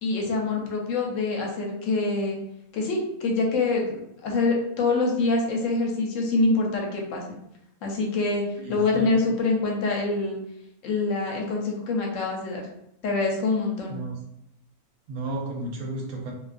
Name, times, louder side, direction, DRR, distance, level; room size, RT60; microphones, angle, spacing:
voice 1, 0.0-2.4 2.7-7.4 7.8-10.4 10.8-12.7 13.0-14.0, left 3 dB, 70° left, 0 dB, 0.9 m, -25 dB
voice 2, 8.6-9.1 13.9-14.2 15.1-16.3, right 2 dB, 80° right, 0 dB, 1.0 m, -33 dB
2.4 x 2.3 x 2.4 m, 0.78 s
omnidirectional pair, 1.5 m